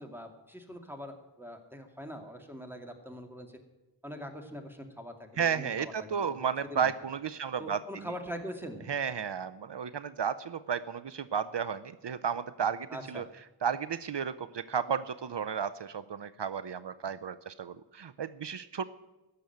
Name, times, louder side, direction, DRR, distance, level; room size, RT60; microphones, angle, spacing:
voice 1, 0.0-3.6 4.0-6.4 6.7-6.9 7.6-8.9 12.9-13.2, equal, 5° right, 4 dB, 2.4 m, -43 dB
voice 2, 5.4-7.8 8.9-13.2 13.6-18.8, right 7 dB, 70° right, 13 dB, 0.6 m, -33 dB
17.0 x 7.0 x 9.3 m, 1.1 s
wide cardioid pair, 45°, 44 cm